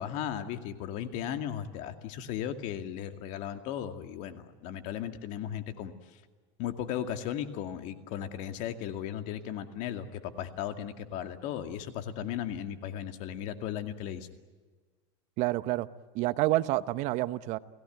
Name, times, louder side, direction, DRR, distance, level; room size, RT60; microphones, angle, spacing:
voice 1, 0.0-5.9 6.6-14.3, left 10 dB, 60° left, 7 dB, 2.3 m, -36 dB
voice 2, 15.4-15.9 16.1-17.6, right 17 dB, 55° right, 14 dB, 0.9 m, -28 dB
30.0 x 17.5 x 9.3 m, 1.4 s
supercardioid pair, 135°, 15 cm